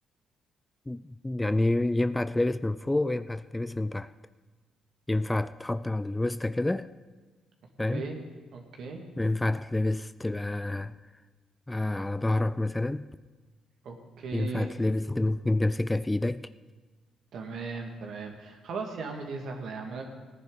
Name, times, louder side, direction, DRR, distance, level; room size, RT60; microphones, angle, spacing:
voice 1, 0.9-4.1 5.1-6.9 7.8-8.1 9.2-10.9 11.7-13.1 14.3-16.5, left 2 dB, 10° left, 0.3 m, -28 dB
voice 2, 8.5-9.0 13.8-14.7 17.3-20.0, right 4 dB, 70° right, 2.0 m, -37 dB
18.0 x 10.5 x 4.0 m
cardioid pair, 90°, 0 cm